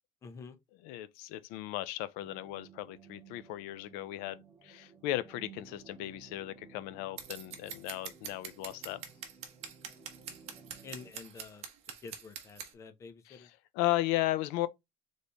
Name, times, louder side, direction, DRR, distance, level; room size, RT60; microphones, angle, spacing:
voice 1, 0.2-0.6 10.8-11.7 12.0-13.5, left 5 dB, 20° left, 0.7 m, -48 dB
voice 2, 0.8-9.0 13.3-14.7, left 16 dB, 75° left, 0.5 m, -35 dB
sound 1, 2.2-11.1, right 6 dB, 15° right, 0.7 m, -56 dB
Scissors, 7.2-12.7, right 8 dB, 45° right, 1.0 m, -44 dB
4.1 x 3.3 x 3.4 m
cardioid pair, 175°, 15 cm